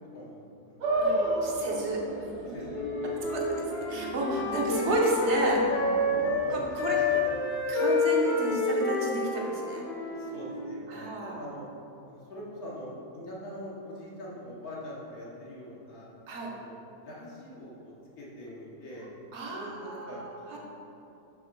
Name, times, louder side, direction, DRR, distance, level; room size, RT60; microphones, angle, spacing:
voice 1, 0.0-1.7 2.2-3.6 4.4-4.6 6.1-7.5 10.1-11.6 12.1-16.1 16.4-16.7 17.0-19.1 19.5-20.2 20.5-20.6, left 1 dB, 70° left, -6 dB, 1.6 m, -43 dB
sound 1, 0.8-7.3, right 1 dB, 80° right, 1.6 m, -33 dB
voice 2, 1.0-2.0 3.3-3.4 3.9-5.6 6.5-7.0 7.7-9.8 10.9-11.4 16.3-16.5 19.3-20.6, right 2 dB, 50° right, -2 dB, 1.2 m, -32 dB
Wind instrument woodwind instrument, 2.7-6.5 6.7-10.9, left 3 dB, 55° left, 0.8 m, -29 dB
6.3 x 3.6 x 6.0 m, 2.9 s
omnidirectional pair, 1.6 m